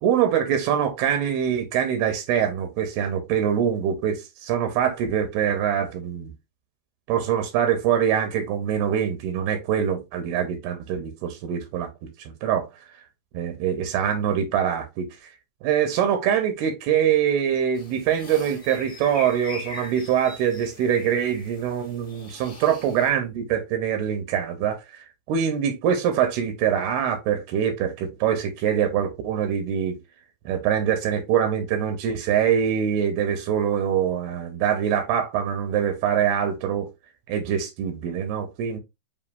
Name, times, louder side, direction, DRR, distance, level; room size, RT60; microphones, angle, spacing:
voice 1, 0.0-6.3 7.1-12.7 13.3-15.1 15.6-30.0 30.5-36.9 37.3-38.8, right 8 dB, 80° right, 2.6 m, -24 dB
sound 1, 17.7-23.1, left 1 dB, 50° left, 0.9 m, -41 dB
7.1 x 2.6 x 2.5 m
omnidirectional pair, 4.6 m